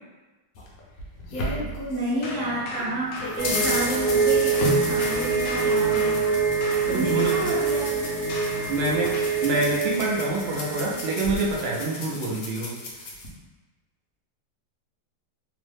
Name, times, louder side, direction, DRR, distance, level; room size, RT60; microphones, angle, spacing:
sound 1, 0.6-2.4 2.8-13.3, left 2 dB, 65° left, 1.0 m, -34 dB
voice 1, 1.9-6.1 6.8-8.1, right 1 dB, 55° right, -6 dB, 1.0 m, -30 dB
sound 2, 2.2-4.3 4.5-9.5, left 2 dB, 85° left, 1.2 m, -38 dB
sound 3, 3.4-11.8 12.1-12.2, right 5 dB, 25° left, 0.4 m, -25 dB
voice 2, 6.9-7.4 8.7-9.1 9.4-12.7, right 3 dB, 85° right, -3 dB, 0.5 m, -26 dB
3.1 x 2.0 x 3.2 m, 1.2 s
omnidirectional pair, 1.8 m